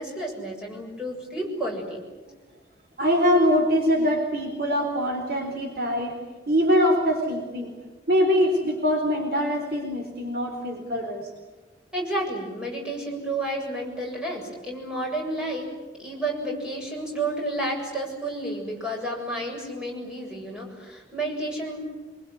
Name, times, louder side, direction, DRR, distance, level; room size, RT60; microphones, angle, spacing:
voice 1, 0.0-2.0 11.9-15.7 16.0-21.8, right 1 dB, 5° right, -2 dB, 7.4 m, -31 dB
voice 2, 3.0-6.1 6.5-7.7 8.1-11.3, equal, 55° right, 2 dB, 4.1 m, -23 dB
25.5 x 23.0 x 9.6 m, 1.3 s
head